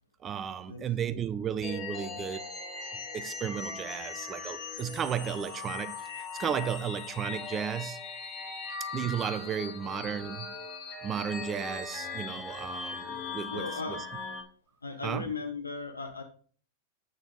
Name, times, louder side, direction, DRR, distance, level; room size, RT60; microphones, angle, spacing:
voice 1, 0.2-2.4 3.1-8.0 8.9-10.5 11.0-14.0 15.0-15.3, right 8 dB, 25° right, 0.7 m, -34 dB
sound 1, 1.6-14.4, left 4 dB, 30° left, 2.1 m, -39 dB
voice 2, 13.5-14.0 14.8-16.2, left 4 dB, 90° left, 0.8 m, -37 dB
8.3 x 6.5 x 3.8 m
figure-of-eight pair, 95°, 0 cm